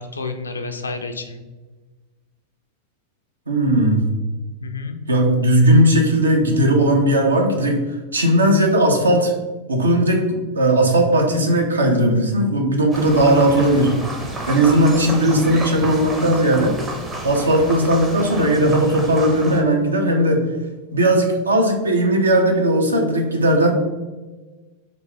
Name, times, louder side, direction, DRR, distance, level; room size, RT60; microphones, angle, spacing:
voice 1, 0.0-1.4 4.6-5.0 17.4-17.7, left 4 dB, 75° left, 7 dB, 0.4 m, -30 dB
voice 2, 3.5-4.1 5.1-7.8 8.1-9.3 9.7-13.9 14.4-16.8 17.2-20.4 20.9-23.7, right 1 dB, 75° right, 2 dB, 0.6 m, -17 dB
sound 1, 12.9-19.6, right 1 dB, 20° right, 0.6 m, -31 dB
3.3 x 2.5 x 3.3 m, 1.2 s
figure-of-eight pair, 90°, 0 cm